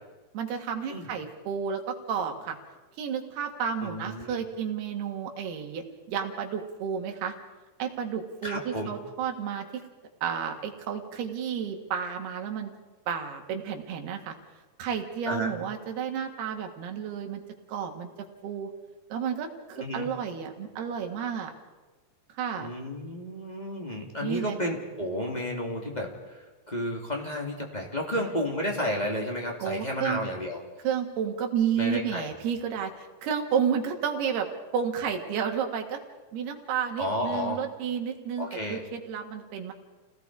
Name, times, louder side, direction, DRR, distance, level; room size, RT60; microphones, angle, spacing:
voice 1, 0.3-2.6 3.0-7.3 7.8-9.7 10.2-12.7 13.1-14.3 14.8-17.4 17.7-18.1 18.4-18.7 19.1-21.5 22.4-22.7 24.2-24.6 28.1-28.3 29.6-30.2 30.8-34.5 34.7-36.0 36.3-39.7, right 7 dB, 85° right, 3 dB, 3.9 m, -31 dB
voice 2, 3.8-4.4 8.4-8.9 15.3-15.5 19.8-20.1 22.6-30.6 31.8-32.3 37.0-37.6 38.4-38.8, left 1 dB, 15° left, 0 dB, 1.9 m, -32 dB
29.5 x 18.5 x 4.8 m, 1.2 s
omnidirectional pair, 4.5 m